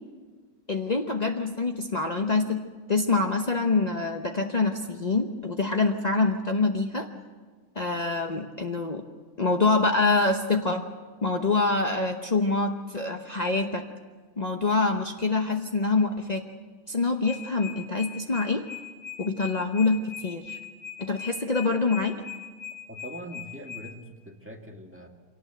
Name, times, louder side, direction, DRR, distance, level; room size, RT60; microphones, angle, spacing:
voice 1, 0.7-2.6 2.9-7.1 7.8-9.0 9.4-10.8 11.2-13.8 14.4-16.4 16.9-18.6 19.2-20.6 21.0-22.2, left 3 dB, 45° left, 4 dB, 0.5 m, -25 dB
sound 1, 17.2-23.8, left 9 dB, 15° left, 7.5 m, -40 dB
voice 2, 22.9-25.1, right 1 dB, 5° right, 1 dB, 1.8 m, -42 dB
25.0 x 18.0 x 7.8 m, 1.5 s
omnidirectional pair, 2.3 m